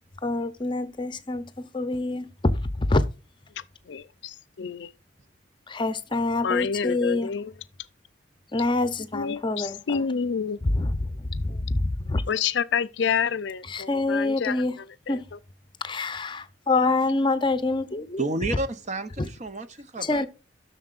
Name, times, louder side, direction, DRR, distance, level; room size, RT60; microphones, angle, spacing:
voice 1, 0.2-3.0 5.7-7.3 8.5-10.0 10.6-12.2 13.7-14.8 15.1-15.3 15.8-18.2 19.2-19.3 20.0-20.3, left 2 dB, 25° left, 0.7 m, -26 dB
voice 2, 3.9-4.9 6.4-7.5 9.1-10.6 12.3-14.6 15.1-15.2, left 6 dB, 65° left, 0.4 m, -28 dB
voice 3, 18.2-20.3, right 2 dB, 40° right, 0.7 m, -31 dB
11.5 x 6.6 x 2.4 m
head